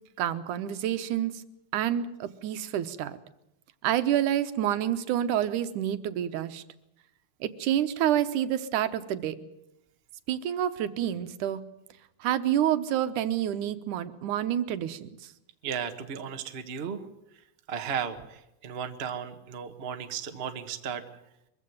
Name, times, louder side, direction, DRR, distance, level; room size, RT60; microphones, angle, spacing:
voice 1, 0.2-1.4 1.7-3.2 3.8-6.6 7.4-9.5 10.3-11.6 12.2-15.3, right 11 dB, 80° right, 12 dB, 2.5 m, -28 dB
voice 2, 15.6-17.0 17.7-21.0, right 7 dB, 35° right, 7 dB, 0.9 m, -35 dB
23.0 x 15.5 x 9.4 m, 0.84 s
omnidirectional pair, 3.5 m